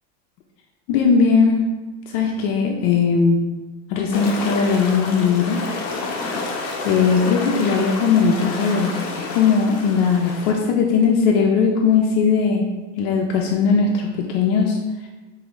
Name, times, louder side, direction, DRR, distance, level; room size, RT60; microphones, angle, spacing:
voice 1, 0.9-1.8 2.1-3.5 3.9-5.6 6.2-6.6 6.8-12.7 13.0-14.8, left 5 dB, 70° left, 1 dB, 0.6 m, -19 dB
sound 1, 4.1-10.5, left 3 dB, 45° left, 0.8 m, -29 dB
5.1 x 2.7 x 3.0 m, 1.2 s
cardioid pair, 135°, 38 cm